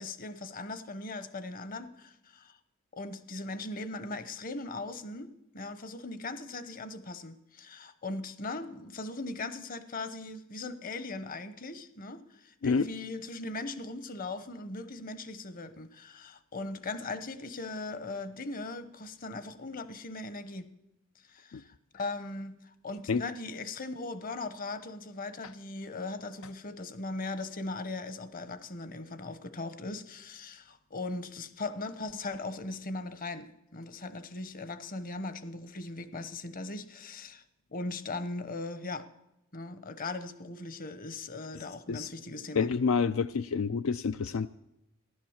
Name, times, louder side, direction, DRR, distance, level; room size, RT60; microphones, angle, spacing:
voice 1, 0.0-2.6 2.9-20.7 21.3-37.4 37.7-39.1 39.5-42.7, left 2 dB, 45° left, 1.0 m, -39 dB
voice 2, 41.6-42.1 42.5-44.5, left 5 dB, 80° left, 0.4 m, -28 dB
15.0 x 11.5 x 7.2 m
head